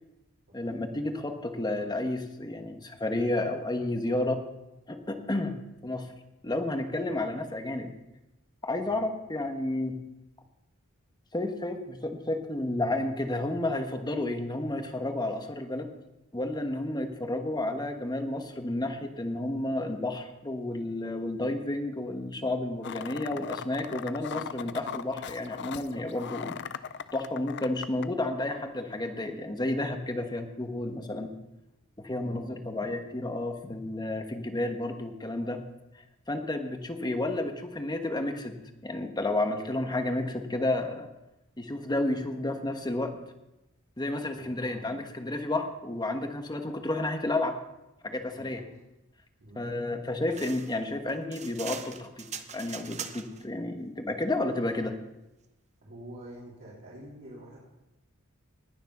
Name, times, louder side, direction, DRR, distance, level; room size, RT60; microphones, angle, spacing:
voice 1, 0.5-4.4 4.9-5.6 5.8-6.1 6.4-7.9 8.6-10.0 11.3-15.9 16.3-26.6 27.1-31.3 32.0-35.6 36.3-41.1 41.6-43.2 44.0-47.6 48.0-48.6 49.6-52.3 52.5-55.0, left 2 dB, 20° left, 6 dB, 1.3 m, -31 dB
sound 1, 22.8-28.1, left 7 dB, 55° left, 0.5 m, -39 dB
voice 2, 32.0-32.4 44.3-45.3 48.3-48.6 49.4-49.6 55.8-57.6, right 1 dB, 55° right, -8 dB, 3.5 m, -48 dB
sound 2, 50.3-53.4, right 7 dB, 35° right, 0.8 m, -41 dB
19.5 x 7.1 x 5.6 m, 0.95 s
head